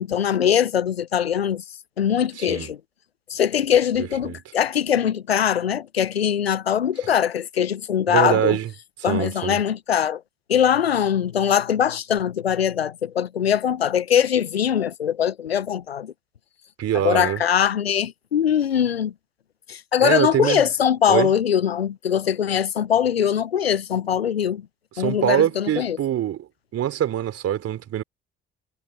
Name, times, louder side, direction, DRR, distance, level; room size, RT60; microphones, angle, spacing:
voice 1, 0.0-1.6 2.0-2.8 3.3-8.6 9.0-10.2 10.5-16.1 16.9-19.1 19.7-24.7 25.0-26.0, left 9 dB, 90° left, 0.8 m, -22 dB
voice 2, 2.4-2.7 4.0-4.4 7.0-7.1 8.1-8.7 9.1-9.6 16.8-17.4 20.0-20.6 21.1-21.3 25.0-26.5 26.7-28.0, right 10 dB, 55° right, 3.7 m, -24 dB
figure-of-eight pair, 45°, 30 cm